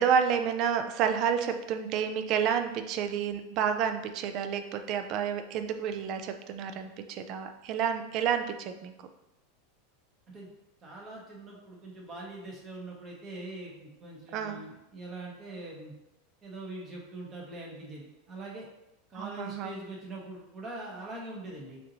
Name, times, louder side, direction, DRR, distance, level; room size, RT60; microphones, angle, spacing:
voice 1, 0.0-8.9 14.3-14.6 19.1-19.8, right 7 dB, 40° right, 7 dB, 0.4 m, -30 dB
voice 2, 10.8-15.9 16.4-18.7 19.1-21.8, right 2 dB, 25° right, -2 dB, 1.2 m, -43 dB
6.1 x 2.7 x 3.0 m, 0.92 s
supercardioid pair, 145°, 0 cm